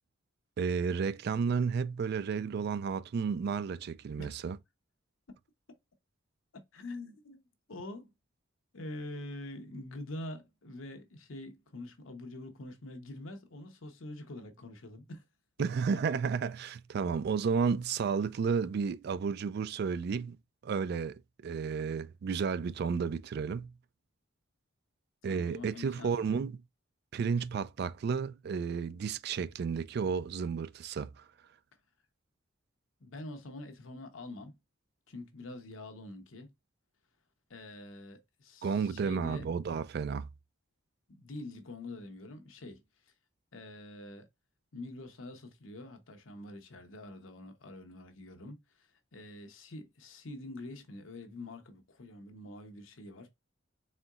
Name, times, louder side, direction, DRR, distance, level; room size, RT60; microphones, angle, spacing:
voice 1, 0.6-4.6 15.6-20.4 20.6-23.7 25.2-26.6 27.1-31.2 38.6-40.3, right 5 dB, 55° right, 0.3 m, -32 dB
voice 2, 6.7-8.1 8.7-15.2 15.9-16.0 25.3-26.4 33.0-34.6 35.1-36.5 37.5-39.5 41.1-42.8 43.5-44.3 44.7-53.3, left 2 dB, 85° left, 0.9 m, -45 dB
4.2 x 3.8 x 2.4 m
head